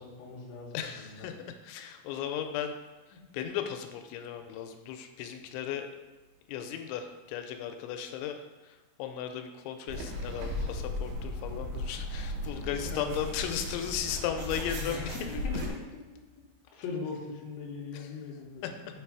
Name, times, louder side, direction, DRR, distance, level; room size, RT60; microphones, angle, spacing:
voice 1, 0.0-1.3 3.1-3.2 4.4-4.5 12.5-13.1 14.8-15.8 16.1-16.2 16.7-18.9, left 5 dB, 70° left, -1 dB, 2.4 m, -40 dB
voice 2, 0.7-2.7 3.3-5.9 6.5-8.4 8.7-15.4 17.9-18.1 18.6-18.7, left 9 dB, 90° left, 6 dB, 2.9 m, -36 dB
sound 1, 9.9-15.7, left 1 dB, 85° right, 3.3 m, -36 dB
7.0 x 3.1 x 4.7 m, 1.2 s
omnidirectional pair, 5.1 m